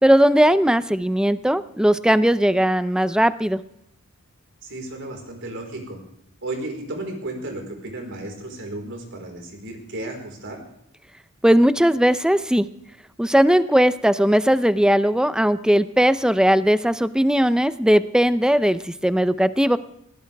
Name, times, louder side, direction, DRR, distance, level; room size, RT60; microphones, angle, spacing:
voice 1, 0.0-3.6 11.4-12.7 13.2-19.8, equal, 5° right, 13 dB, 0.6 m, -18 dB
voice 2, 4.6-6.0 6.4-10.6, right 2 dB, 60° right, 2 dB, 4.6 m, -33 dB
20.5 x 18.0 x 3.5 m, 0.76 s
head